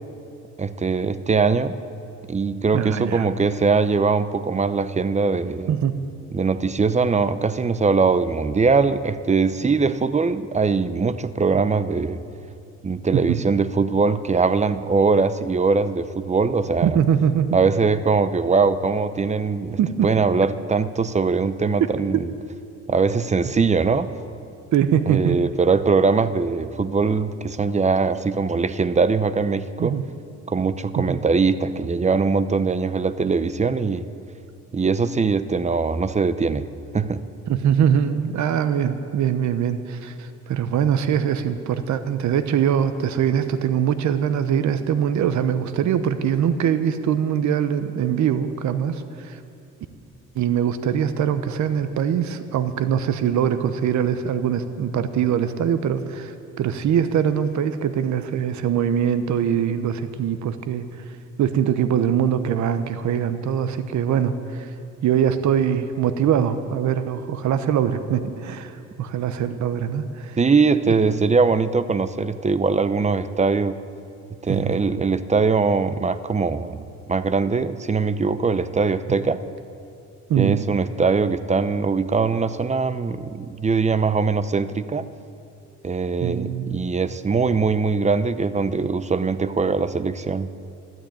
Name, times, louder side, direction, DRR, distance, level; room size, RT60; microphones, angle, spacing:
voice 1, 0.6-1.7 2.3-5.7 6.3-12.2 12.8-17.0 17.5-22.3 22.9-24.1 25.1-30.0 30.5-34.1 34.7-36.6 36.9-37.2 70.4-73.8 74.4-76.8 77.1-79.4 80.4-85.1 85.8-90.5, right 4 dB, 25° right, 13 dB, 0.7 m, -21 dB
voice 2, 2.7-3.2 5.7-6.0 13.1-13.4 16.8-17.6 19.8-20.1 24.7-25.4 29.8-30.0 31.0-31.2 37.5-49.4 50.3-60.8 61.4-64.7 65.0-70.4 71.1-71.2 74.5-74.8 80.3-80.7 86.2-86.8, right 8 dB, 70° right, 10 dB, 0.9 m, -22 dB
13.0 x 12.0 x 8.8 m, 2.5 s
cardioid pair, 90°, 30 cm